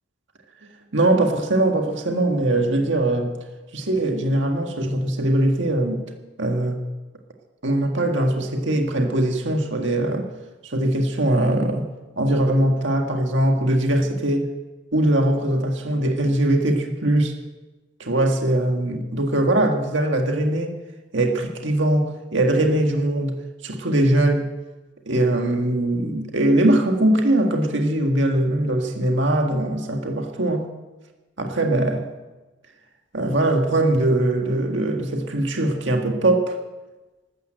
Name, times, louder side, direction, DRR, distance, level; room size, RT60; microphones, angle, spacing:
voice 1, 0.9-3.3 3.7-6.0 6.4-6.8 7.6-10.3 10.6-11.9 12.2-14.5 14.9-17.4 18.0-20.7 21.1-23.3 23.6-24.5 25.1-30.7 31.4-32.1 33.1-36.6, right 1 dB, 65° right, 3 dB, 1.9 m, -21 dB
14.0 x 13.0 x 7.8 m, 1.2 s
head